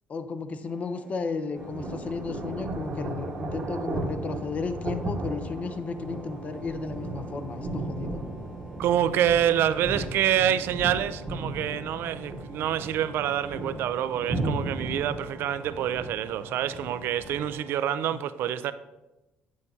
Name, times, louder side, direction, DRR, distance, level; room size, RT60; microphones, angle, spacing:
voice 1, 0.1-8.2, left 4 dB, 35° left, 0.6 m, -34 dB
sound 1, 0.6-18.0, equal, 10° left, 1.1 m, -51 dB
sound 2, 1.5-17.4, right 2 dB, 40° right, 1.0 m, -35 dB
voice 2, 8.8-18.7, right 10 dB, 65° right, 0.4 m, -27 dB
8.5 x 6.3 x 2.7 m
cardioid pair, 115°, 4 cm